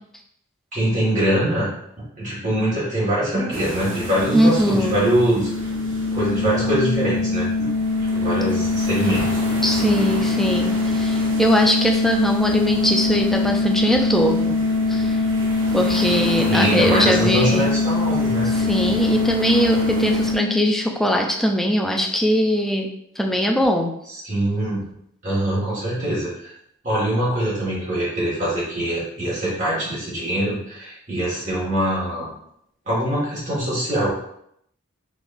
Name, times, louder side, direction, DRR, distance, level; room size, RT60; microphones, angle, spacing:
voice 1, 0.7-5.5 6.1-7.7 8.1-9.4 16.5-18.5 24.2-24.9 25.2-26.5 26.8-32.3 32.9-34.1, right 1 dB, 40° right, -8 dB, 1.8 m, -23 dB
sound 1, 3.5-20.3, right 1 dB, 70° right, 1.1 m, -34 dB
sound 2, 3.8-21.3, left 3 dB, 25° left, 1.2 m, -23 dB
voice 2, 4.3-5.0 9.6-14.6 14.9-15.2 15.7-17.7 18.5-22.9 23.2-23.9, equal, ahead, 1 dB, 0.5 m, -21 dB
4.9 x 4.0 x 2.6 m, 0.72 s
head